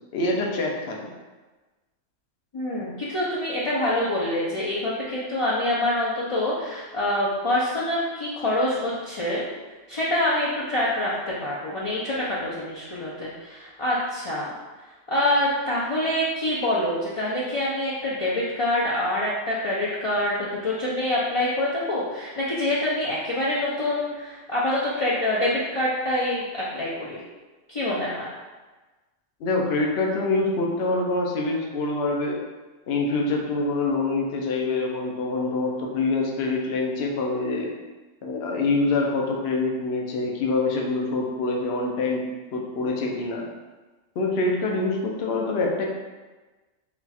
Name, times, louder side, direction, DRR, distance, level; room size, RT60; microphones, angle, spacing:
voice 1, 0.1-1.1 29.4-32.4 32.9-37.7 38.2-42.2 42.5-43.5 44.2-45.8, left 3 dB, 60° left, 0 dB, 0.8 m, -25 dB
voice 2, 2.5-9.4 9.9-14.5 15.1-27.2 27.7-28.3, left 1 dB, 45° left, -8 dB, 0.4 m, -26 dB
4.0 x 2.4 x 4.1 m, 1.2 s
omnidirectional pair, 1.3 m